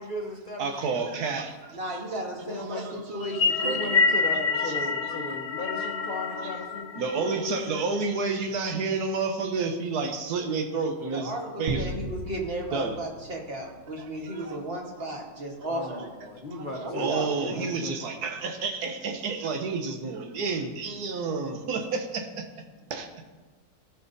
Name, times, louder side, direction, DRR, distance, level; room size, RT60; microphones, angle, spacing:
voice 1, 0.0-1.2 2.4-3.2 3.4-7.9 15.6-18.1, left 1 dB, 40° left, 0 dB, 0.9 m, -37 dB
voice 2, 0.6-2.0 2.7-2.8 6.3-6.5 6.9-11.3 11.6-11.9 12.7-13.0 14.0-14.6 15.8-15.9 16.9-22.4 22.9-23.1, right 4 dB, 80° right, 5 dB, 1.4 m, -30 dB
voice 3, 1.7-3.8 11.1-16.1 16.8-17.7, right 1 dB, 40° right, -1 dB, 1.5 m, -34 dB
sound 1, 3.2-7.8, left 4 dB, 70° left, 0.5 m, -27 dB
sound 2, 11.7-14.2, right 2 dB, 60° right, 1.3 m, -36 dB
16.0 x 5.7 x 2.7 m, 1.3 s
omnidirectional pair, 1.6 m